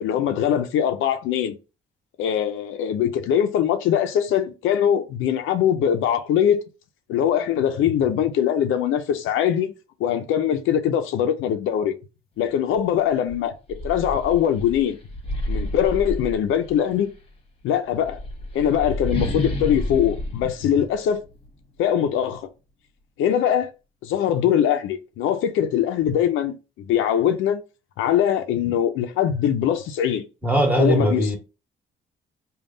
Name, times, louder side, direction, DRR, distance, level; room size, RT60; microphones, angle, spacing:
voice 1, 0.0-1.6 2.2-6.6 7.1-9.7 10.0-11.9 12.4-13.5 13.8-15.0 15.5-17.1 17.6-18.2 18.5-21.2 21.8-22.5 23.2-23.7 24.0-27.6 28.0-30.2 30.8-31.4, left 9 dB, 85° left, 0.5 m, -22 dB
sound 1, 12.8-12.9 13.3-16.9 17.9-21.5, left 1 dB, 30° left, 1.1 m, -30 dB
voice 2, 30.4-31.4, right 1 dB, 10° right, 1.5 m, -20 dB
3.5 x 2.3 x 3.8 m
cardioid pair, 90°, 20 cm